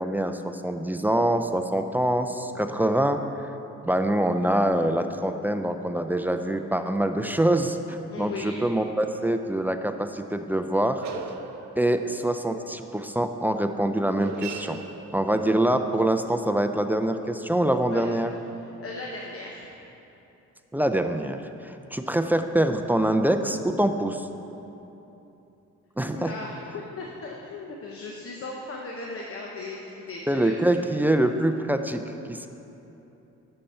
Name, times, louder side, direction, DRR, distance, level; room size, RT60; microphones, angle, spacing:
voice 1, 0.0-3.2 3.8-11.0 11.8-14.8 15.1-18.3 20.7-24.3 26.0-26.3 30.3-32.5, right 1 dB, 5° right, 6 dB, 0.4 m, -25 dB
sound 1, 6.6-8.4 9.0-9.2 9.6-9.7 10.7-17.0, right 5 dB, 65° right, 0.7 m, -43 dB
voice 2, 8.1-8.6 17.8-18.0 18.8-19.7 26.1-26.6 27.0-31.0, left 3 dB, 50° left, -1 dB, 0.9 m, -37 dB
9.8 x 6.7 x 4.3 m, 3.0 s
cardioid pair, 90°, 30 cm